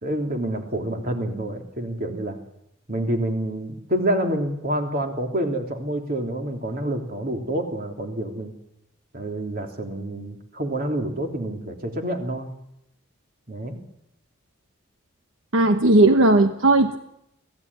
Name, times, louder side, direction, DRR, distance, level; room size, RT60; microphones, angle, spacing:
voice 1, 0.0-2.4 2.9-8.5 9.1-12.6 13.5-13.8, right 1 dB, 45° right, 3 dB, 3.4 m, -27 dB
voice 2, 15.5-17.0, right 2 dB, 70° right, 7 dB, 1.1 m, -16 dB
24.0 x 16.0 x 9.8 m, 0.81 s
head